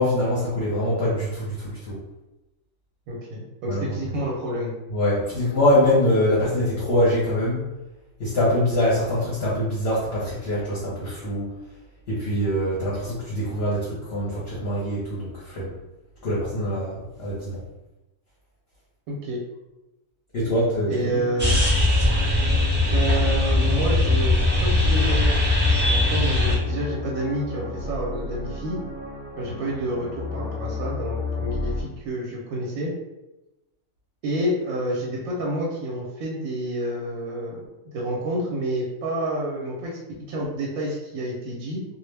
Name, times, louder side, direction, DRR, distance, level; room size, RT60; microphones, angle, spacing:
voice 1, 0.0-2.0 3.7-3.8 4.9-7.6 8.2-11.5 12.1-15.7 16.2-17.6 20.3-21.2, left 1 dB, 55° left, -7 dB, 0.9 m, -24 dB
voice 2, 3.1-4.7 19.1-19.4 20.9-21.6 22.9-25.5 25.8-28.8 29.4-32.9 34.2-40.0 40.3-41.9, right 1 dB, 85° right, -3 dB, 1.0 m, -29 dB
sound 1, 21.4-31.8, left 2 dB, 15° right, 0.4 m, -23 dB
2.3 x 2.0 x 3.1 m, 0.99 s
omnidirectional pair, 1.4 m